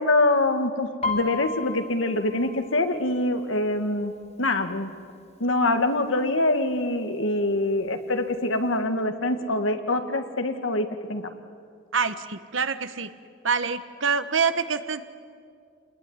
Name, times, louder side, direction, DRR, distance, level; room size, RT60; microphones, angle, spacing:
voice 1, 0.0-4.1 4.4-4.9 5.4-11.3, left 2 dB, 90° left, 7 dB, 2.0 m, -24 dB
Piano, 1.0-4.7 5.0-5.4 5.8-6.4 7.0-7.1 7.3-8.4 8.7-8.8, left 3 dB, 35° left, 2.1 m, -35 dB
voice 2, 11.9-13.1 13.4-15.0, right 5 dB, 80° right, 11 dB, 1.3 m, -26 dB
28.5 x 21.0 x 9.7 m, 2.3 s
head